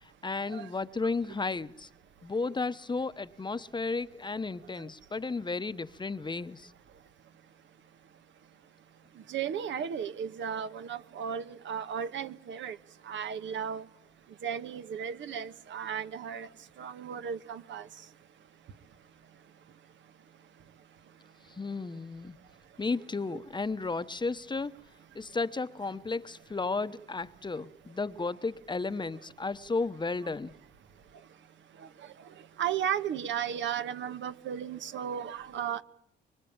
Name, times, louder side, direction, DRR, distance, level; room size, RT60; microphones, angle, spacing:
voice 1, 0.0-1.9 2.2-6.7 21.6-22.4 22.8-24.7 25.1-30.5, left 3 dB, 20° left, 1.0 m, -33 dB
voice 2, 9.3-12.8 13.1-13.8 14.4-16.5 16.8-17.8 32.6-35.8, right 8 dB, 70° right, 1.5 m, -35 dB
25.5 x 23.0 x 8.8 m
cardioid pair, 90°, 20 cm